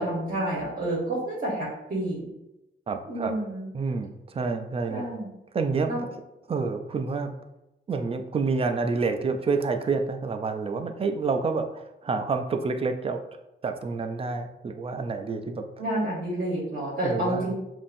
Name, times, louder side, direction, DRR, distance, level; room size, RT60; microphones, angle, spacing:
voice 1, 0.0-2.3 3.1-3.7 4.9-5.3 5.9-6.0 15.8-17.5, right 1 dB, 45° right, -6 dB, 1.1 m, -29 dB
voice 2, 2.9-3.3 3.7-5.0 5.5-5.9 6.5-7.3 7.9-13.2 13.6-15.6 17.0-17.5, right 4 dB, 30° right, 6 dB, 0.4 m, -28 dB
7.2 x 2.6 x 2.6 m, 0.93 s
wide cardioid pair, 175°, 20 cm